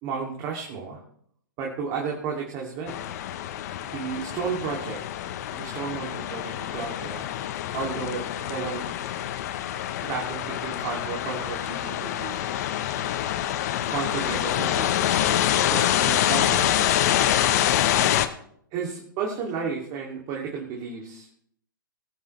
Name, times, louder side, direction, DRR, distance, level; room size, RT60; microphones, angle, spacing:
voice 1, 0.0-1.0 1.6-3.0 3.9-5.0 5.5-7.3 7.7-8.9 10.0-12.4 13.9-15.4 15.7-17.0 18.7-21.3, right 6 dB, 35° right, -1 dB, 2.6 m, -33 dB
sound 1, 2.9-18.3, left 11 dB, 50° left, 1.0 m, -26 dB
20.5 x 8.8 x 3.2 m, 0.67 s
hypercardioid pair, 120°, 11 cm